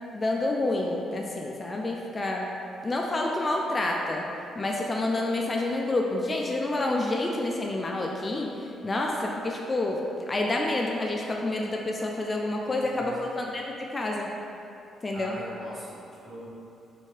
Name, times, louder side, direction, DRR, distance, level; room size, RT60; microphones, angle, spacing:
voice 1, 0.1-2.5 2.8-4.3 4.6-14.4 15.0-15.4, left 2 dB, 30° left, 0 dB, 0.3 m, -28 dB
voice 2, 12.6-13.3 15.1-16.5, right 1 dB, 35° right, -6 dB, 0.9 m, -42 dB
3.4 x 2.7 x 3.2 m, 2.7 s
cardioid pair, 90°, 0 cm